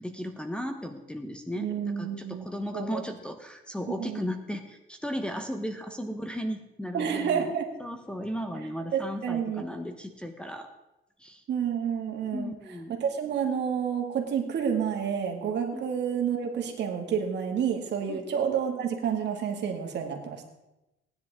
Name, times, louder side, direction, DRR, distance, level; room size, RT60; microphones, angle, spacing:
voice 1, 0.0-1.7 2.0-7.5 7.8-10.7 11.2-11.4 12.3-12.9 15.7-15.8 18.1-18.3, equal, 5° left, 3 dB, 0.9 m, -35 dB
voice 2, 1.6-2.5 2.7-3.0 4.0-4.2 6.9-7.7 8.9-9.7 11.5-12.5 13.0-20.4, right 7 dB, 55° right, 3 dB, 2.2 m, -29 dB
18.0 x 10.5 x 3.7 m, 0.94 s
cardioid pair, 125°, 21 cm